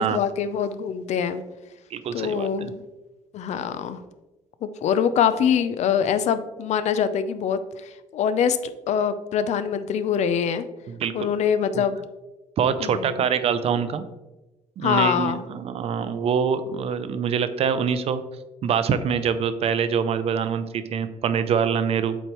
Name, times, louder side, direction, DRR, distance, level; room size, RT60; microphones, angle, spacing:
voice 1, 0.0-1.4 2.1-2.8 3.3-4.0 4.6-8.6 8.9-10.7 11.1-12.0 12.8-13.2 14.8-15.4, left 8 dB, 60° left, 12 dB, 0.5 m, -24 dB
voice 2, 1.9-2.7 10.9-11.3 11.7-11.8 12.6-14.0 14.8-18.2 18.6-22.2, right 7 dB, 50° right, 11 dB, 0.5 m, -24 dB
7.9 x 4.5 x 3.0 m, 1.1 s
cardioid pair, 150°, 13 cm